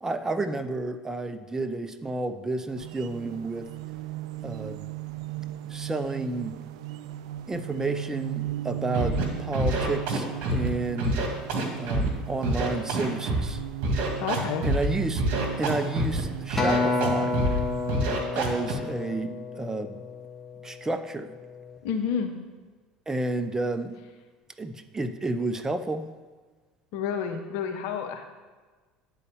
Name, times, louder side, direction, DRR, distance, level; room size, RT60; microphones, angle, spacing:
voice 1, 0.0-3.7 4.4-4.9 5.7-6.6 7.5-11.2 11.8-13.6 14.6-15.2 15.6-17.4 18.3-20.0 20.6-21.3 23.1-24.0 24.6-26.1, right 2 dB, 15° right, 10 dB, 0.6 m, -31 dB
sound 1, 2.8-18.0, right 13 dB, 75° right, 0.4 m, -37 dB
Scratching (performance technique), 8.9-9.2 9.5-10.7 11.0-12.1 12.4-13.5 13.8-14.9 15.2-16.2 16.5-17.1 17.3-17.6 17.9-18.7, right 1 dB, 55° right, 1.9 m, -26 dB
voice 2, 14.2-14.7 21.8-22.3 26.9-28.2, left 7 dB, 65° left, 5 dB, 0.9 m, -29 dB
Acoustic guitar, 16.6-21.0 21.6-21.8, left 3 dB, 10° left, 1.6 m, -30 dB
9.8 x 4.1 x 7.1 m, 1.3 s
hypercardioid pair, 75°, 3 cm